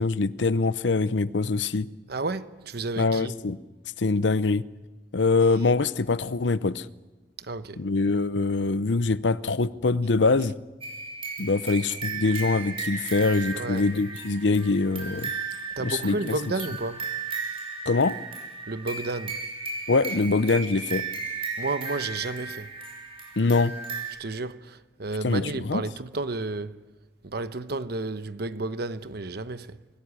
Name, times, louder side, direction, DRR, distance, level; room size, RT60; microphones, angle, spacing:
voice 1, 0.0-1.9 3.0-3.6 4.0-4.6 5.1-6.9 7.8-10.5 11.4-15.3 15.8-16.4 17.9-18.2 19.9-21.0 23.4-23.7 25.2-25.8, left 3 dB, 80° left, 0.7 m, -24 dB
voice 2, 2.1-3.3 7.5-7.8 13.5-13.8 15.8-17.0 18.7-19.4 21.6-22.7 24.2-26.8 27.2-29.8, right 3 dB, 60° right, 1.0 m, -32 dB
sound 1, 10.8-24.1, right 4 dB, 35° right, 5.8 m, -35 dB
24.5 x 16.5 x 10.0 m
head